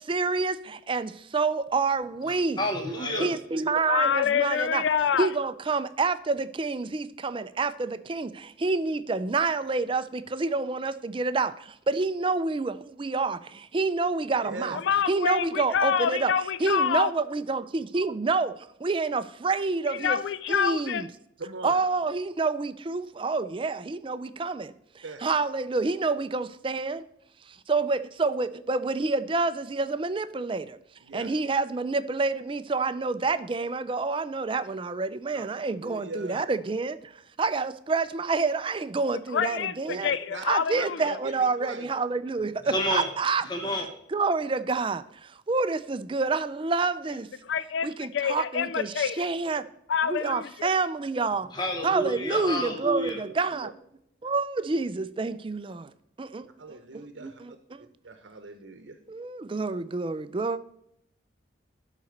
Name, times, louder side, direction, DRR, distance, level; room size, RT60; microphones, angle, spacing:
voice 1, 0.1-2.6 3.2-4.9 5.2-14.8 15.1-16.3 16.6-20.2 20.5-21.1 21.6-27.0 27.5-30.8 31.1-37.1 37.4-40.1 40.4-43.4 44.1-47.3 47.8-49.6 50.0-51.5 51.8-53.7 54.2-55.9 56.2-57.8 59.1-60.6, right 4 dB, 25° right, 0.4 m, -28 dB
voice 2, 2.3-3.3 42.7-43.1 43.4-43.9 51.5-53.2, equal, 20° left, 1.0 m, -29 dB
voice 3, 2.9-3.6 14.4-14.8 21.4-21.8 25.0-25.2 31.0-31.3 35.3-35.4 35.8-36.4 39.9-40.0 40.3-40.4 40.7-41.9 53.0-53.7 56.6-57.4 58.0-59.0, right 3 dB, 70° right, 0.8 m, -40 dB
voice 4, 3.9-5.3 14.7-17.1 19.9-21.1 39.3-39.7 40.0-41.2 47.4-49.3 49.9-50.7, left 7 dB, 70° left, 0.3 m, -27 dB
11.5 x 4.1 x 6.4 m
head